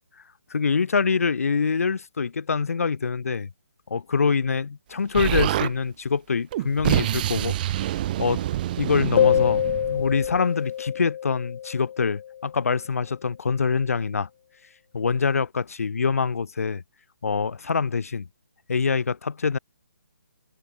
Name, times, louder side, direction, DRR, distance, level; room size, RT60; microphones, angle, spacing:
voice 1, 0.5-3.5 3.9-7.9 8.2-8.4 8.8-14.3 14.9-16.8 17.2-18.3 18.7-19.6, left 5 dB, 65° left, 1.5 m, -25 dB
Explosion, 5.1-5.7 6.5-10.4, right 13 dB, 35° right, 2.0 m, -26 dB
sound 1, 9.2-12.5, left 10 dB, 40° left, 2.1 m, -25 dB
figure-of-eight pair, 145°, 8 cm